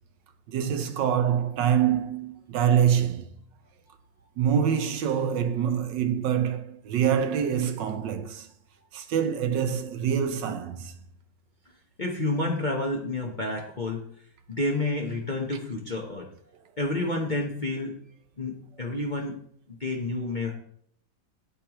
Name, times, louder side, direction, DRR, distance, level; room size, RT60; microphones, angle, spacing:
voice 1, 0.5-3.3 4.4-8.5 8.9-10.9, right 8 dB, 70° right, 1.3 m, -25 dB
voice 2, 12.0-14.1 14.5-16.3 16.8-18.0 18.4-19.4 19.7-20.6, left 2 dB, 30° left, 0.9 m, -29 dB
9.1 x 8.6 x 3.0 m
omnidirectional pair, 2.1 m